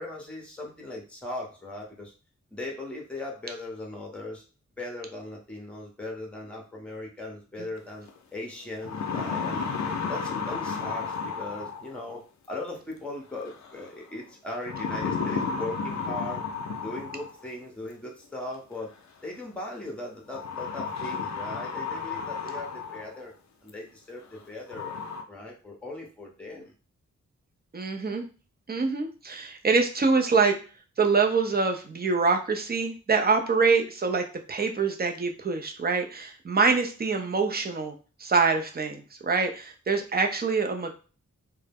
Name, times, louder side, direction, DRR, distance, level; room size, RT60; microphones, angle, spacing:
voice 1, 0.0-2.1 2.5-4.4 4.8-9.7 10.0-12.2 12.5-16.4 16.8-18.9 19.2-23.3 23.6-25.0 25.3-26.7, left 2 dB, 5° left, 0 dB, 0.7 m, -38 dB
sound 1, 8.1-8.2 8.6-12.0 13.5-13.9 14.7-17.5 18.7-18.8 20.3-23.2 23.7-23.8 24.3-24.4 24.7-25.2, left 5 dB, 65° left, 0.5 m, -32 dB
voice 2, 27.7-28.2 28.7-30.6 31.0-37.9 38.2-40.9, right 4 dB, 30° right, 3 dB, 0.5 m, -25 dB
2.2 x 2.0 x 3.4 m, 0.37 s
wide cardioid pair, 90°, 30 cm